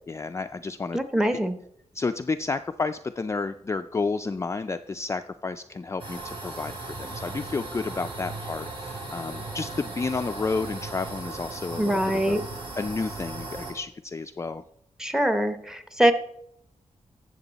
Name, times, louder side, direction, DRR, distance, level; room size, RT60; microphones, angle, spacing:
voice 1, 0.1-1.0 1.9-12.4 12.8-14.6, left 4 dB, 25° left, 8 dB, 0.3 m, -31 dB
voice 2, 0.9-1.5 11.8-12.4 15.0-16.1, right 1 dB, 5° right, 10 dB, 0.8 m, -23 dB
sound 1, 6.0-13.7, right 2 dB, 50° right, 2.9 m, -37 dB
12.5 x 7.6 x 4.0 m, 0.73 s
wide cardioid pair, 120°, 12 cm